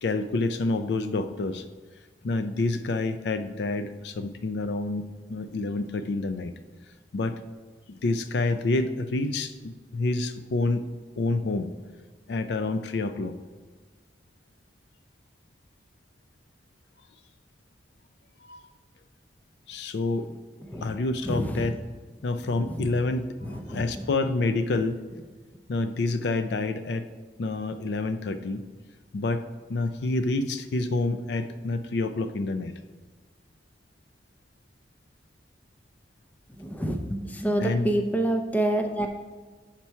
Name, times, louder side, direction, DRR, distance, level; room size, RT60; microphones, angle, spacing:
voice 1, 0.0-1.6 2.2-6.5 7.1-7.4 7.9-10.8 11.2-11.7 12.3-13.3 18.4-18.7 19.7-20.3 20.8-21.8 22.2-25.0 25.7-27.0 27.4-28.6 29.1-29.4 29.7-32.7 37.6-37.9, left 3 dB, 70° left, 10 dB, 0.4 m, -28 dB
voice 2, 21.2-21.7 22.7-22.9 23.4-23.8 36.6-39.1, right 1 dB, 10° left, 4 dB, 0.5 m, -27 dB
7.2 x 4.4 x 5.5 m, 1.3 s
head